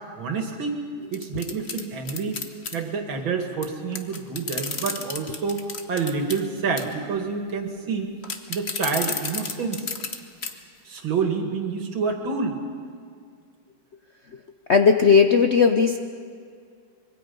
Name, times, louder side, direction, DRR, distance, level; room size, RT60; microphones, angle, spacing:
voice 1, 0.2-0.8 1.1-2.4 2.7-5.6 5.9-8.1 8.5-9.9 10.9-12.6, right 5 dB, 70° right, 4 dB, 2.8 m, -28 dB
sound 1, 1.1-2.8 3.6-3.7 3.9-6.4 6.8-7.0 8.2-10.2 10.4-10.5 11.0-11.1, left 4 dB, 35° left, 1.2 m, -31 dB
voice 2, 14.7-16.0, left 5 dB, 75° left, 6 dB, 0.6 m, -17 dB
25.0 x 22.5 x 5.4 m, 2.2 s
omnidirectional pair, 2.2 m